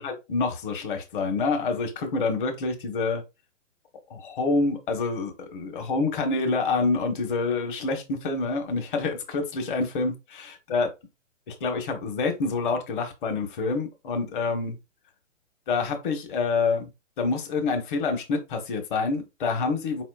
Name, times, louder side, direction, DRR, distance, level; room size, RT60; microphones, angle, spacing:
voice 1, 0.0-3.2 4.1-10.9 11.5-14.8 15.7-16.9 17.2-20.0, left 4 dB, 40° left, 1.3 m, -27 dB
4.7 x 4.2 x 2.4 m
hypercardioid pair, 145°, 38 cm